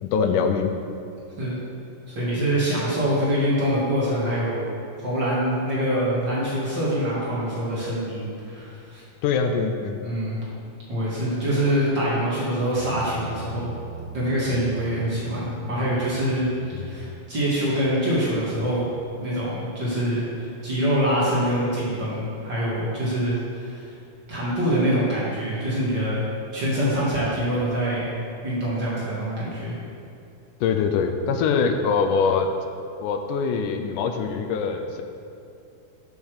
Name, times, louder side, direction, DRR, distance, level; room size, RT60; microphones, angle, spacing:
voice 1, 0.0-0.8 9.2-10.0 16.7-17.0 30.6-32.5 33.0-35.0, left 5 dB, 80° left, 5 dB, 2.2 m, -23 dB
voice 2, 2.1-4.6 5.0-9.0 10.0-10.4 10.9-13.7 14.1-16.5 16.8-18.9 19.2-23.9 24.3-26.3 26.5-28.1 28.4-29.8, equal, 40° right, -8 dB, 2.4 m, -25 dB
Bass guitar, 12.8-19.0, right 7 dB, 85° right, 1.4 m, -42 dB
7.2 x 7.0 x 6.5 m, 2.6 s
omnidirectional pair, 3.7 m